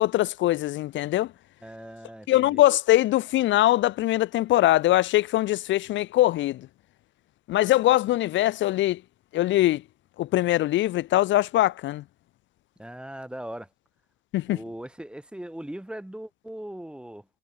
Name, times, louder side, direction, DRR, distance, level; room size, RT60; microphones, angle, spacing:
voice 1, 0.0-1.3 2.3-6.7 7.5-9.0 9.3-9.8 10.2-12.0 14.3-14.6, left 15 dB, 70° left, 0.4 m, -22 dB
voice 2, 1.6-2.6 12.8-13.7 14.5-17.2, right 1 dB, 5° right, 1.2 m, -39 dB
cardioid pair, 90°, 20 cm